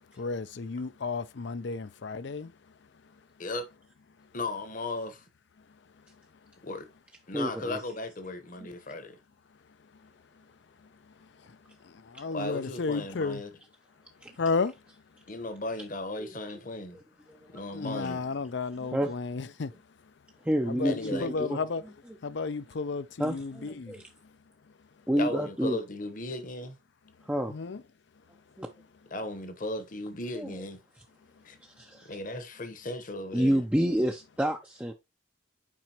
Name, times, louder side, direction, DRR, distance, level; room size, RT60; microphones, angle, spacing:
voice 1, 0.2-2.5 11.8-13.4 14.4-14.7 17.7-19.7 20.7-21.8 22.2-23.9 27.5-27.8, left 4 dB, 60° left, 0.5 m, -32 dB
voice 2, 4.3-5.3 6.6-6.9 7.3-9.2 12.3-13.5 15.3-17.0 17.5-18.2 20.8-21.3 25.2-26.8 29.1-30.8 31.4-31.6 32.0-33.6, left 2 dB, 40° left, 1.0 m, -36 dB
voice 3, 7.3-7.8 8.6-8.7 14.2-14.3 16.2-16.3 17.3-17.6 18.8-19.1 20.4-21.6 23.2-24.0 25.1-25.8 27.2-27.5 28.6-28.7 30.3-30.6 31.6-32.1 33.3-34.9, equal, 5° right, 0.5 m, -29 dB
7.4 x 5.0 x 2.9 m
head